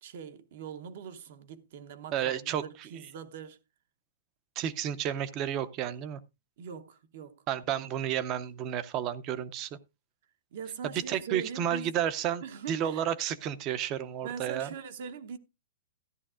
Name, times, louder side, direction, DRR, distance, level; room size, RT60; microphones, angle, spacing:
voice 1, 0.0-3.6 6.6-7.4 10.5-12.0 12.4-13.1 14.2-15.4, right 7 dB, 55° right, 0.8 m, -42 dB
voice 2, 2.1-2.6 4.6-6.2 7.5-9.7 11.1-14.7, right 10 dB, 25° right, 0.5 m, -31 dB
13.5 x 11.0 x 2.5 m
hypercardioid pair, 165°, 0 cm